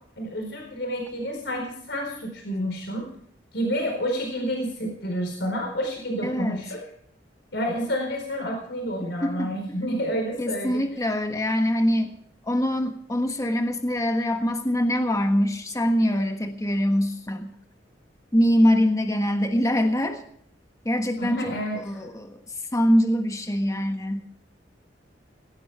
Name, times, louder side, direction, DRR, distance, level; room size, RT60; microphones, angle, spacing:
voice 1, 0.2-3.1 3.5-6.8 7.5-10.8 21.2-22.0, equal, 70° left, 2 dB, 4.5 m, -29 dB
voice 2, 6.2-6.6 9.2-9.5 10.4-12.1 12.4-17.5 18.3-20.2 20.8-22.4 22.7-24.2, equal, 20° left, 5 dB, 1.4 m, -23 dB
17.5 x 17.0 x 3.5 m, 0.63 s
head